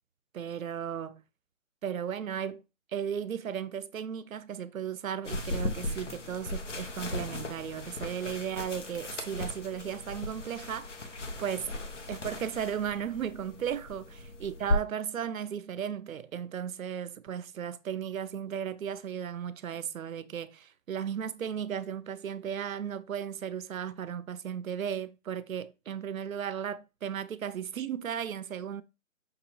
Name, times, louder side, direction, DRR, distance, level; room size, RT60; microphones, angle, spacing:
voice 1, 0.3-1.2 1.8-2.6 2.9-11.1 11.4-11.7 12.1-28.8, right 8 dB, 85° right, 0.6 m, -35 dB
sound 1, 5.2-14.8, left 2 dB, 65° left, 1.0 m, -36 dB
5.8 x 2.9 x 3.0 m
hypercardioid pair, 180°, 40 cm